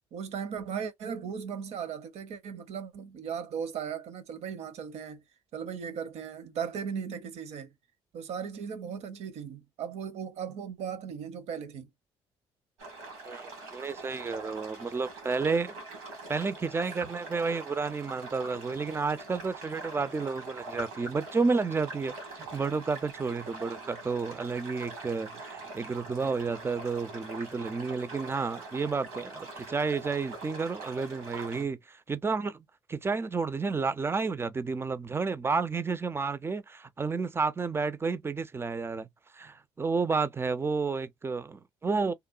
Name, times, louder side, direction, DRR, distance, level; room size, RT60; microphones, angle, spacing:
voice 1, 0.1-5.2 5.5-7.7 8.1-11.9 16.9-17.0, right 7 dB, 65° right, 0.7 m, -37 dB
sound 1, 12.8-31.6, right 3 dB, 90° right, 1.3 m, -43 dB
voice 2, 13.2-15.7 16.3-42.1, right 4 dB, 20° right, 0.4 m, -31 dB
2.9 x 2.0 x 2.4 m
hypercardioid pair, 60°, 12 cm